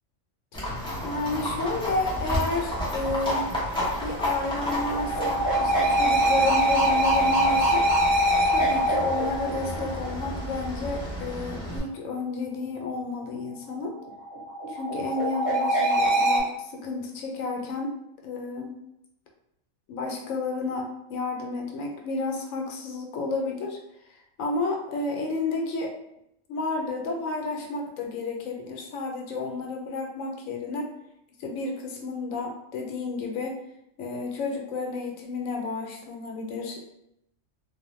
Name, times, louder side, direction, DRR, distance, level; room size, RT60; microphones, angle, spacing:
Livestock farm animals working animals, 0.5-11.8, equal, 5° left, 0.5 m, -32 dB
voice 1, 1.0-3.5 4.0-7.9 8.5-13.9 14.7-17.9 18.2-18.8 19.9-23.8 24.4-25.9 26.5-30.9 31.4-33.5 34.0-36.8, left 3 dB, 85° left, 1 dB, 1.0 m, -31 dB
sound 1, 4.5-10.4 14.0-16.4, right 1 dB, 40° right, 0.9 m, -24 dB
2.5 x 2.0 x 3.0 m, 0.80 s
omnidirectional pair, 1.4 m